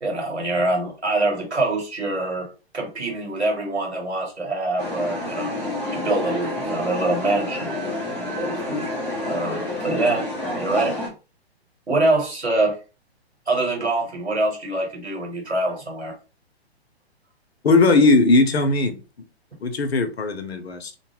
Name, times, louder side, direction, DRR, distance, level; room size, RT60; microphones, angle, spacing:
voice 1, 0.0-5.5 5.9-7.7 8.4-8.9 9.2-10.3 10.6-11.0 11.9-12.8 13.5-16.1, right 2 dB, 85° right, 1.5 m, -24 dB
sound 1, 4.8-11.1, left 1 dB, 5° left, 0.5 m, -28 dB
voice 2, 17.6-19.0 19.6-20.9, left 3 dB, 70° left, 0.7 m, -18 dB
2.6 x 2.2 x 3.0 m
figure-of-eight pair, 120°, 32 cm